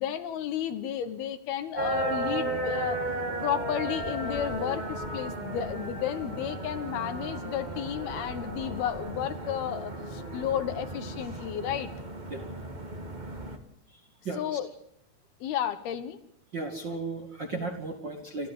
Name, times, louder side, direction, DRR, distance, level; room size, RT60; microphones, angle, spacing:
voice 1, 0.0-3.0 3.4-11.9 14.4-14.7 15.4-16.2, left 10 dB, 75° left, 10 dB, 3.1 m, -32 dB
sound 1, 1.8-13.6, right 2 dB, 65° right, 0.4 m, -35 dB
voice 2, 13.9-14.6 16.5-18.5, right 3 dB, 40° right, 3 dB, 1.9 m, -35 dB
28.0 x 13.5 x 8.1 m, 0.79 s
omnidirectional pair, 4.7 m